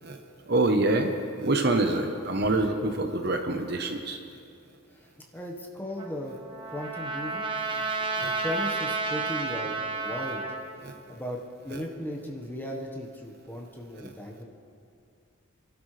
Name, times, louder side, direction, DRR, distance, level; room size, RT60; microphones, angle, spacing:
voice 1, 0.5-4.2 7.7-7.9 8.2-8.4 10.8-10.9 11.7-11.8 14.0-14.1, right 2 dB, 50° right, 5 dB, 0.9 m, -26 dB
voice 2, 5.3-6.4 6.7-7.5 8.4-10.5 11.1-14.4, left 1 dB, 10° left, -1 dB, 1.3 m, -36 dB
Trumpet, 6.0-10.6, right 4 dB, 25° right, 1.1 m, -31 dB
27.0 x 12.0 x 3.3 m, 2.5 s
head